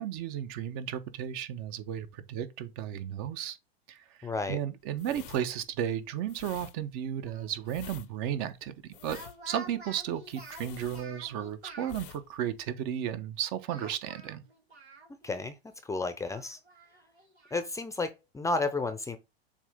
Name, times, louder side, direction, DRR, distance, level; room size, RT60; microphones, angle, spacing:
voice 1, 0.0-3.6 3.9-9.2 9.5-14.4, right 10 dB, 45° right, 0.9 m, -34 dB
voice 2, 4.2-4.6 15.2-15.6 15.8-16.6 17.5-19.2, left 3 dB, 10° left, 0.7 m, -32 dB
sound 1, 4.9-11.5 11.8-12.2 12.5-12.7, left 14 dB, 55° left, 0.7 m, -48 dB
Speech, 7.2-7.9 8.9-12.0 13.7-15.4 15.7-15.8 16.2-17.7, right 3 dB, 85° right, 2.4 m, -49 dB
7.2 x 2.8 x 5.0 m
figure-of-eight pair, 90°, 32 cm